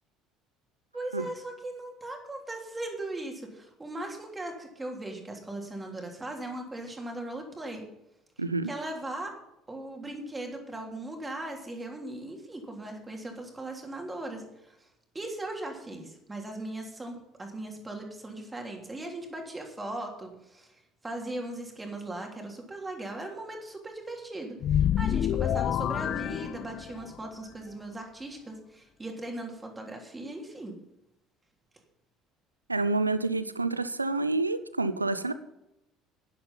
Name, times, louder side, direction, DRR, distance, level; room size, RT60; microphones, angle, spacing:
voice 1, 0.9-7.8 8.7-9.4 9.7-14.9 15.1-30.7, right 1 dB, 15° right, 2 dB, 3.2 m, -38 dB
voice 2, 8.4-8.7 32.7-35.3, right 3 dB, 90° right, 13 dB, 0.5 m, -28 dB
sound 1, 24.6-27.2, left 10 dB, 50° left, 0.4 m, -27 dB
11.5 x 10.5 x 5.6 m, 0.88 s
figure-of-eight pair, 60°, 0 cm